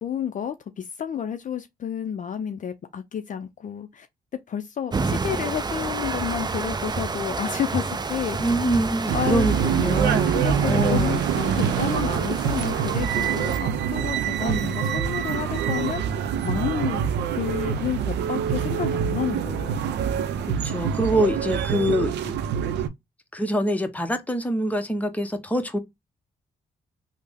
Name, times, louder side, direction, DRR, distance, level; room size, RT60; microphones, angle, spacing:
voice 1, 0.0-4.1 4.5-8.6 9.1-9.8 10.1-19.9, left 9 dB, 50° left, 0.4 m, -31 dB
sound 1, 4.9-13.6, right 4 dB, 25° right, 0.4 m, -30 dB
voice 2, 8.4-11.2 14.4-14.7 20.5-22.3 23.3-25.8, equal, 10° left, 0.7 m, -25 dB
sound 2, 9.1-22.9, right 8 dB, 85° right, 0.5 m, -25 dB
3.3 x 2.0 x 3.4 m
cardioid pair, 65°, 17 cm